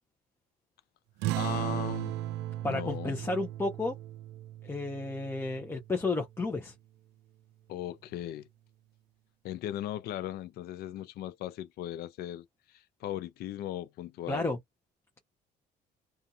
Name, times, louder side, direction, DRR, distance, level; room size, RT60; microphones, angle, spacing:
sound 1, 1.2-6.2, right 14 dB, 85° right, 0.4 m, -36 dB
voice 1, 1.3-2.1 2.6-3.2 7.7-8.5 9.4-14.5, left 12 dB, 70° left, 0.4 m, -38 dB
voice 2, 2.6-3.9 4.6-6.7 14.3-14.6, left 3 dB, 15° left, 0.6 m, -32 dB
2.5 x 2.3 x 2.7 m
cardioid pair, 110°, 17 cm